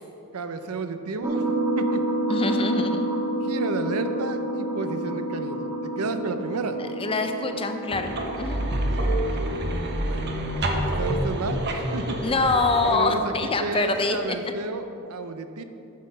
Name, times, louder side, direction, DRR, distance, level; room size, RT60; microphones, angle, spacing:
voice 1, 0.3-2.0 3.4-6.8 9.1-10.4 10.8-12.4 12.9-15.6, right 3 dB, 90° right, 9 dB, 0.6 m, -32 dB
sound 1, 1.2-13.6, right 1 dB, 10° right, 0.8 m, -30 dB
voice 2, 2.3-3.1 6.8-8.6 12.2-14.4, left 3 dB, 25° left, 6 dB, 0.5 m, -25 dB
sound 2, 7.9-12.9, right 1 dB, 50° right, 1.0 m, -27 dB
9.3 x 6.4 x 5.3 m, 2.8 s
head